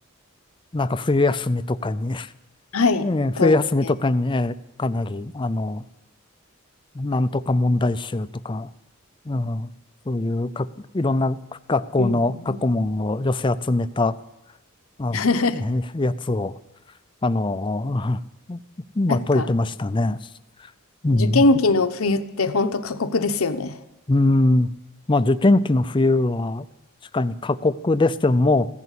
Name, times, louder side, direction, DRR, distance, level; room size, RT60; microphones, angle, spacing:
voice 1, 0.7-2.3 3.0-5.8 6.9-8.7 9.3-9.7 10.1-10.7 10.9-11.4 11.7-14.2 15.0-15.3 15.5-16.5 17.2-18.2 18.5-18.6 19.0-20.2 21.0-21.5 24.1-24.7 25.1-26.7 27.1-28.7, left 2 dB, 20° left, 13 dB, 0.5 m, -22 dB
voice 2, 2.7-3.1 3.4-3.6 12.0-12.2 12.4-12.6 15.1-15.6 19.1-19.5 21.1-23.8, left 3 dB, 80° left, 10 dB, 0.9 m, -21 dB
15.5 x 11.0 x 8.3 m, 0.88 s
head